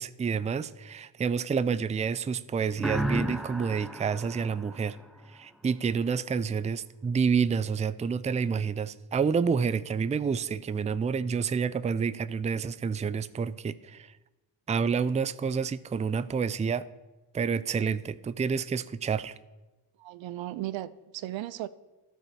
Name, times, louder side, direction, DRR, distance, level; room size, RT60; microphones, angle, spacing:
voice 1, 0.0-5.0 5.3-14.1 14.7-16.8 17.3-19.3, right 6 dB, 15° right, 0.4 m, -29 dB
sound 1, 2.8-5.5, equal, ahead, 0.9 m, -33 dB
voice 2, 20.0-21.7, right 14 dB, 80° right, 0.5 m, -36 dB
12.5 x 4.6 x 6.5 m
supercardioid pair, 50°, 45 cm